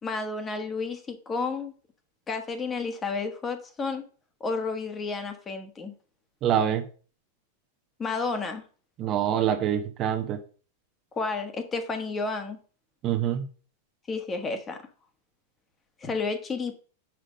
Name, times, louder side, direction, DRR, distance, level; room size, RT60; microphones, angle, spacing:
voice 1, 0.0-1.7 2.3-4.0 4.4-5.9 8.0-8.6 11.1-12.6 14.1-14.8 16.0-16.7, left 4 dB, 20° left, 6 dB, 1.4 m, -31 dB
voice 2, 6.4-6.8 9.0-10.4 13.0-13.4, right 10 dB, 40° right, 6 dB, 1.0 m, -25 dB
6.1 x 4.9 x 5.2 m, 0.39 s
hypercardioid pair, 115°, 0 cm